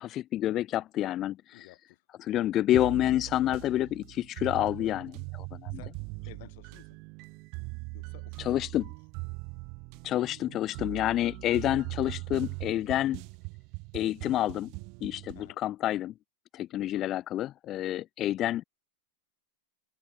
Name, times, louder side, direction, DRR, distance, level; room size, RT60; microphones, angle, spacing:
voice 1, 0.0-1.7 2.2-5.1 5.5-5.8 8.4-8.9 10.0-13.2 13.9-14.7 15.0-16.1 16.5-18.6, left 13 dB, 40° left, 0.4 m, -28 dB
voice 2, 1.5-2.0 4.8-5.0 5.7-7.0 7.9-8.5 15.3-15.6 16.9-17.1, left 21 dB, 60° left, 4.5 m, -53 dB
sound 1, 2.7-15.5, right 31 dB, 50° right, 0.4 m, -41 dB
open air
hypercardioid pair, 110°, 0 cm